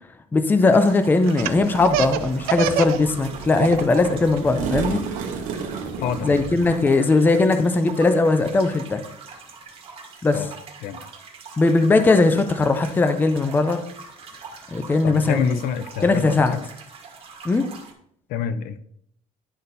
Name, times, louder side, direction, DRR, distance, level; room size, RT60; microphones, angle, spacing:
voice 1, 0.3-5.0 6.2-9.0 10.2-10.4 11.6-13.8 14.7-15.6 16.0-16.6 17.4-17.7, left 3 dB, 10° left, 9 dB, 0.5 m, -19 dB
sound 1, 0.6-17.9, right 5 dB, 35° right, 1.6 m, -42 dB
Laughter, 1.3-3.0 3.3-4.0 4.4-6.1, right 11 dB, 85° right, 0.6 m, -26 dB
sound 2, 1.4-6.8, right 6 dB, 60° right, 1.0 m, -33 dB
voice 2, 6.0-6.4 10.3-10.5 10.8-11.0 15.0-16.7 18.3-18.8, left 8 dB, 70° left, 11 dB, 0.7 m, -28 dB
11.0 x 4.0 x 4.1 m, 0.69 s
cardioid pair, 155°, 15 cm